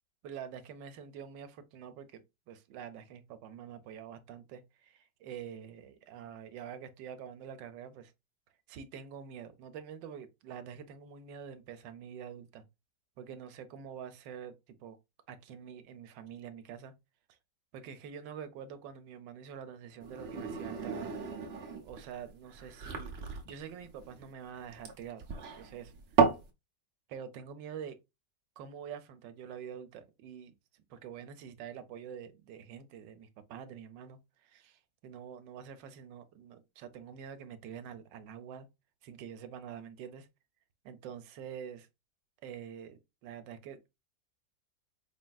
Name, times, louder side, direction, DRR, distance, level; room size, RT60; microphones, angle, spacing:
voice 1, 0.2-8.1 8.7-12.6 13.2-14.5 14.8-15.0 15.3-16.9 17.3-17.4 17.7-21.2 21.8-23.1 23.4-25.9 27.1-28.0 28.6-30.5 30.9-38.7 39.0-40.3 40.8-41.9 42.4-44.0, right 8 dB, 85° right, 1.3 m, -46 dB
sound 1, 20.0-26.5, right 5 dB, 55° right, 0.7 m, -33 dB
4.3 x 3.6 x 2.2 m
omnidirectional pair, 1.9 m